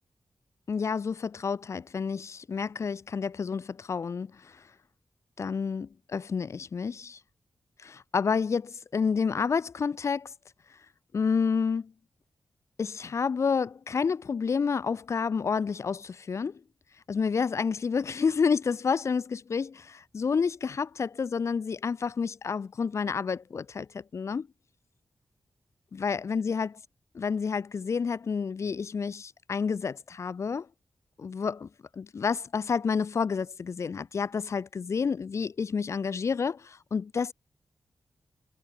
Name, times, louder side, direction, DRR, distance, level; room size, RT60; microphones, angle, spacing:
voice 1, 0.7-4.6 5.4-7.2 7.8-10.3 11.1-11.9 12.8-16.6 17.1-24.5 26.0-26.7 27.1-30.7 31.2-31.7 31.9-37.3, left 5 dB, 60° left, 0.9 m, -29 dB
wide cardioid pair, 105°, 6 cm